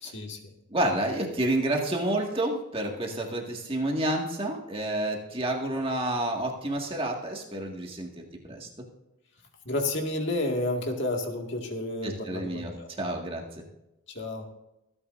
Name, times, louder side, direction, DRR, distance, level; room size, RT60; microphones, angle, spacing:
voice 1, 0.0-0.5 9.7-12.9 14.1-14.5, left 2 dB, 50° left, 2 dB, 2.0 m, -31 dB
voice 2, 0.7-8.7 12.0-12.7 13.0-13.6, right 1 dB, 25° right, 0 dB, 1.9 m, -29 dB
25.0 x 9.8 x 2.6 m, 0.89 s
head